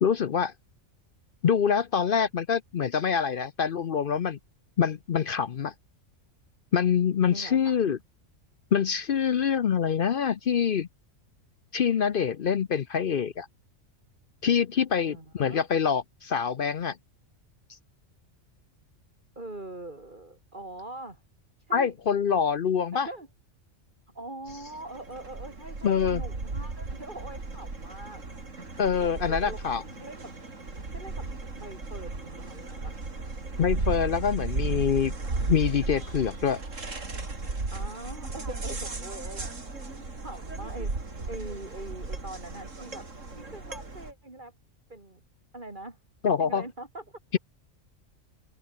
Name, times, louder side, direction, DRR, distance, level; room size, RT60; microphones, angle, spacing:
voice 1, 0.0-0.5 1.4-4.4 4.8-5.7 6.7-8.0 8.7-10.9 11.7-13.5 14.4-17.0 21.7-23.1 25.8-26.2 28.8-29.8 33.6-35.1 35.5-36.6 46.2-46.6, left 7 dB, 50° left, 0.7 m, -25 dB
voice 2, 7.3-7.9 15.1-15.6 19.4-21.2 21.7-21.9 22.9-23.3 24.1-28.2 28.8-29.6 30.0-30.3 30.9-31.3 31.6-32.9 37.7-40.9 41.3-43.1 43.3-44.5 44.9-45.2 45.5-46.0 46.4-47.2, right 2 dB, 35° right, 4.1 m, -42 dB
sound 1, 24.5-44.1, right 3 dB, 75° right, 4.0 m, -35 dB
open air
omnidirectional pair, 1.3 m